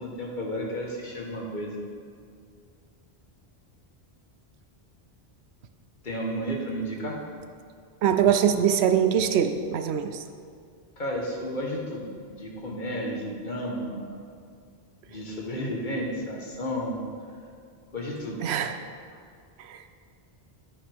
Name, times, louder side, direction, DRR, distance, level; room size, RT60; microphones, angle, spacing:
voice 1, 0.0-1.8 6.0-7.2 11.0-14.2 15.1-17.1 17.9-18.4, equal, 50° left, -1 dB, 1.4 m, -32 dB
voice 2, 8.0-10.2 18.4-18.7 19.7-19.8, right 8 dB, 85° right, 9 dB, 0.9 m, -23 dB
9.5 x 8.9 x 3.5 m, 2.3 s
omnidirectional pair, 1.1 m